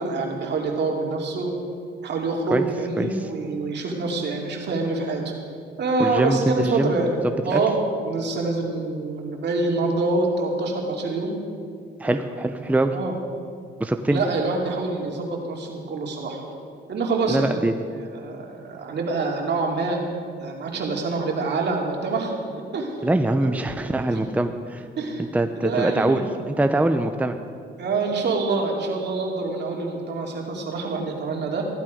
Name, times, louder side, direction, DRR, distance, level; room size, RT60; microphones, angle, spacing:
voice 1, 0.0-1.5 2.0-5.2 5.8-7.2 7.4-11.3 12.0-12.2 12.9-13.1 14.1-16.4 16.9-17.5 17.9-20.0 20.4-22.3 22.7-23.1 23.4-23.8 24.1-24.3 25.0-25.2 25.6-26.3 27.8-31.7, right 3 dB, 60° right, 0 dB, 2.6 m, -26 dB
voice 2, 3.0-3.3 6.0-6.9 7.2-7.6 12.0-12.9 13.8-14.2 17.3-17.7 23.0-24.9 25.2-27.4, right 1 dB, 5° right, 7 dB, 0.6 m, -23 dB
15.5 x 11.5 x 5.1 m, 2.2 s
cardioid pair, 90°, 20 cm